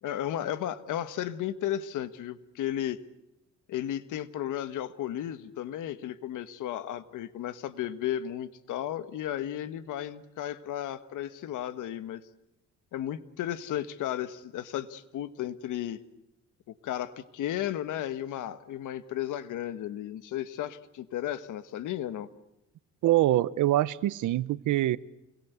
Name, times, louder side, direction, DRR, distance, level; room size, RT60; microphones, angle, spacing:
voice 1, 0.0-3.0 3.7-12.2 12.9-16.0 16.7-22.3, left 11 dB, 85° left, 1.6 m, -34 dB
voice 2, 23.0-25.0, right 14 dB, 80° right, 1.0 m, -24 dB
28.5 x 22.0 x 8.2 m
cardioid pair, 90°, 30 cm